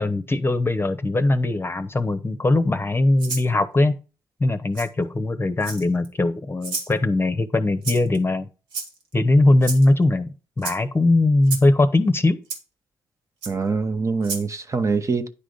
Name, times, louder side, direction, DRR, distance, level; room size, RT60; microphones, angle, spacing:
voice 1, 0.0-3.9 4.4-8.5 9.1-10.3 10.6-12.4, left 2 dB, 25° left, 0.9 m, -20 dB
Rattle (instrument), 3.2-3.5 4.7-4.9 5.6-6.1 6.6-6.9 7.8-8.2 8.7-9.1 9.6-9.9 10.6-10.8 11.5-11.7 12.5-12.6 13.4-13.5 14.2-14.5, right 4 dB, 75° right, 1.7 m, -31 dB
voice 2, 13.5-15.3, right 4 dB, 30° right, 1.0 m, -24 dB
10.0 x 3.8 x 5.1 m
figure-of-eight pair, 40°, 10 cm